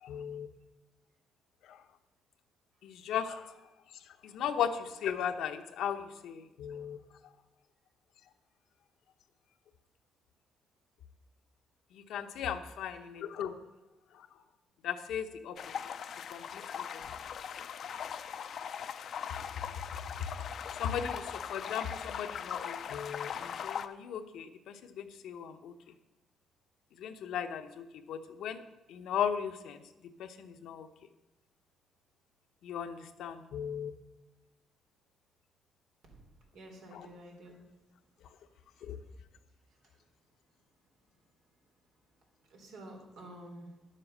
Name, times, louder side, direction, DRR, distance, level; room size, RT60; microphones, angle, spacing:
voice 1, 0.0-0.5 1.6-1.8 2.8-3.6 4.2-7.0 11.9-13.6 14.1-14.3 14.8-15.7 16.3-17.0 20.7-25.7 27.0-28.6 28.9-30.9 32.6-33.9 36.9-37.1 38.8-39.0, left 8 dB, 80° left, 8 dB, 1.0 m, -37 dB
sound 1, 15.6-23.9, left 8 dB, 65° left, 0.6 m, -40 dB
voice 2, 36.5-37.7 38.8-38.9 39.7-40.0 42.4-44.0, right 1 dB, 80° right, 0 dB, 3.8 m, -50 dB
11.0 x 7.6 x 6.7 m, 1.0 s
cardioid pair, 90°, 0 cm